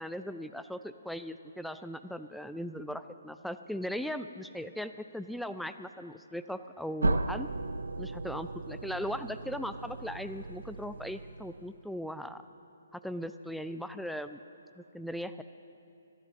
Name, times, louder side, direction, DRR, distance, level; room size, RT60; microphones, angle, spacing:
voice 1, 0.0-7.5 8.0-12.4 12.9-14.4 14.8-15.4, equal, ahead, 10 dB, 0.4 m, -38 dB
sound 1, 7.0-11.8, right 2 dB, 70° right, 0.6 m, -35 dB
14.5 x 11.0 x 6.4 m, 2.7 s
figure-of-eight pair, 135°, 0 cm